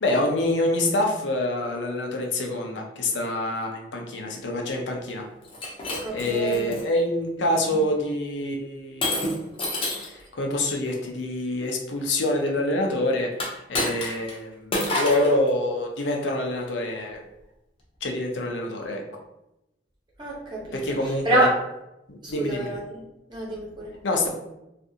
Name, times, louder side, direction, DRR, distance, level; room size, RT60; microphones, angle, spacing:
voice 1, 0.0-5.2 6.1-9.3 9.9-17.2 18.0-19.0 20.7-21.5 22.1-22.7 24.0-24.3, left 1 dB, 85° left, 1 dB, 0.6 m, -26 dB
Shatter, 5.4-6.8 7.5-7.8 9.0-10.2 13.3-14.4 14.7-15.3, left 1 dB, 30° left, 0.6 m, -28 dB
voice 2, 6.0-6.6 20.2-21.5 22.4-23.0 23.3-23.9, right 1 dB, 25° right, -5 dB, 0.9 m, -27 dB
2.5 x 2.4 x 2.7 m, 0.91 s
head